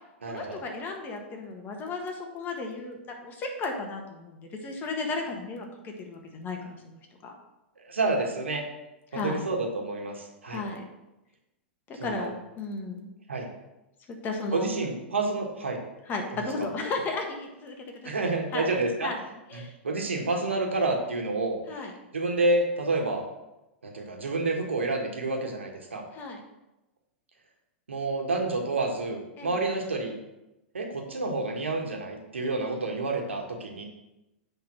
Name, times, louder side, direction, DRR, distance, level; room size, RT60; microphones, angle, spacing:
voice 1, 0.3-7.3 9.1-9.4 10.5-10.8 11.9-12.3 12.6-13.1 14.1-14.7 16.1-17.7 18.0-18.7 19.0-19.2 19.5-19.7 21.7-21.9 26.1-26.4 29.4-29.6, left 3 dB, 30° left, 2 dB, 1.6 m, -34 dB
voice 2, 7.8-8.6 9.1-10.6 12.0-12.3 13.3-13.5 14.5-15.8 16.6-16.7 18.0-19.1 19.5-21.6 22.1-23.2 23.8-26.1 27.9-30.2 30.7-33.8, right 2 dB, 80° right, 2 dB, 1.5 m, -29 dB
8.5 x 3.8 x 5.9 m, 0.96 s
figure-of-eight pair, 100°, 6 cm